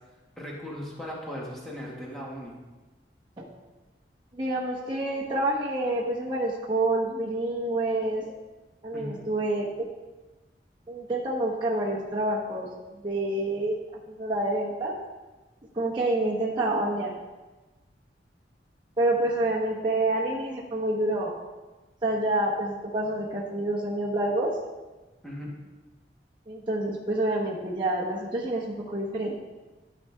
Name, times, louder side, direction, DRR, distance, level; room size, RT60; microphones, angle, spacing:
voice 1, 0.4-2.5 8.9-9.2 25.2-25.5, equal, ahead, -4 dB, 1.9 m, -37 dB
voice 2, 4.3-8.3 8.8-9.9 10.9-12.7 13.0-13.8 14.1-14.9 15.7-17.1 19.0-21.4 22.0-24.6 26.5-29.4, right 1 dB, 25° right, -6 dB, 1.1 m, -27 dB
13.0 x 5.7 x 3.6 m, 1.2 s
head